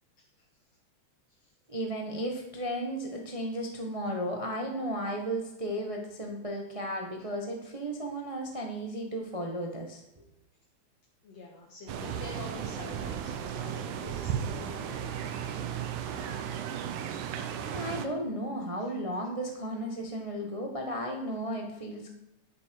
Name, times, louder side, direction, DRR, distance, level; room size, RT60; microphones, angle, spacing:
voice 1, 1.7-10.2 17.7-22.1, right 1 dB, 25° right, 1 dB, 0.7 m, -34 dB
voice 2, 11.2-15.5 18.8-18.9, left 3 dB, 60° left, -1 dB, 2.7 m, -48 dB
sound 1, 11.9-18.1, right 8 dB, 85° right, 2.4 m, -35 dB
11.5 x 10.0 x 4.7 m, 0.88 s
omnidirectional pair, 3.4 m